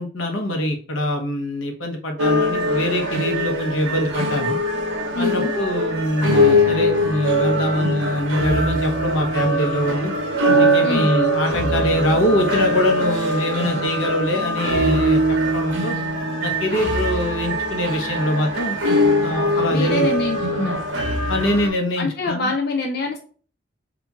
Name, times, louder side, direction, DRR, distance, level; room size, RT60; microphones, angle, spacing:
voice 1, 0.0-4.6 5.2-10.1 10.6-15.2 15.5-16.0 16.4-18.8 19.2-20.1 21.3-22.5, left 1 dB, 90° left, 3 dB, 0.9 m, -23 dB
sound 1, 2.2-21.7, equal, 90° right, 0.9 m, -22 dB
voice 2, 5.1-5.5 10.8-11.1 19.7-20.8 22.0-23.2, left 3 dB, 55° left, 2 dB, 0.4 m, -25 dB
2.9 x 2.5 x 3.4 m, 0.42 s
head